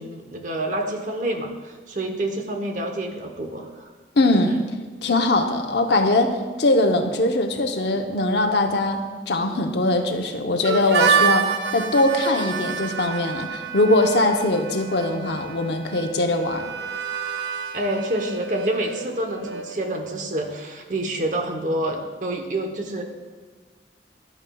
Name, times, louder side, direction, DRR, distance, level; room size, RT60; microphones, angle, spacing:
voice 1, 0.0-3.9 17.7-23.0, right 1 dB, 45° right, 4 dB, 0.9 m, -28 dB
voice 2, 4.2-4.6 5.0-16.7, left 2 dB, 80° left, 5 dB, 0.8 m, -21 dB
Harmonica, 10.6-20.3, right 6 dB, 85° right, 0.6 m, -28 dB
11.5 x 9.0 x 2.3 m, 1.4 s
head